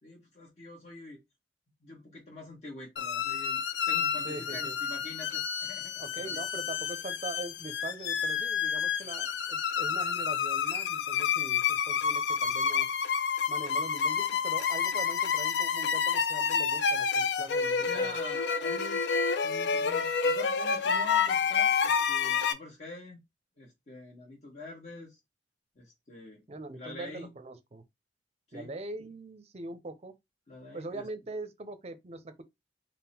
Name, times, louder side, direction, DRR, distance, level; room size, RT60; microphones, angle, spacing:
voice 1, 0.0-1.2 1.8-6.4 17.8-19.0 19.4-23.2 23.6-25.2 25.7-26.4 26.7-27.3 28.5-28.7 30.5-31.1, left 2 dB, 40° left, 1.2 m, -46 dB
sound 1, 3.0-22.5, left 6 dB, 70° left, 0.4 m, -29 dB
voice 2, 4.2-4.8 6.0-12.9 13.5-18.2 26.5-27.8 28.5-30.1 30.7-32.4, right 2 dB, 35° right, 0.5 m, -42 dB
3.6 x 2.1 x 4.2 m
head